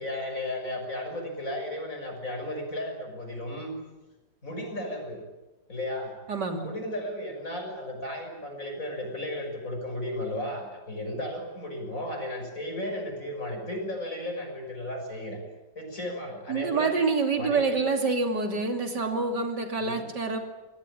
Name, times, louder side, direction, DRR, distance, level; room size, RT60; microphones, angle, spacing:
voice 1, 0.0-3.8 4.4-5.2 5.7-6.1 6.6-15.4 15.7-16.9 17.4-17.9 19.8-20.1, left 1 dB, 45° left, 3 dB, 6.6 m, -34 dB
voice 2, 6.3-6.7 16.5-20.4, right 4 dB, 65° right, 4 dB, 3.4 m, -27 dB
26.5 x 18.5 x 10.0 m, 1.1 s
omnidirectional pair, 2.0 m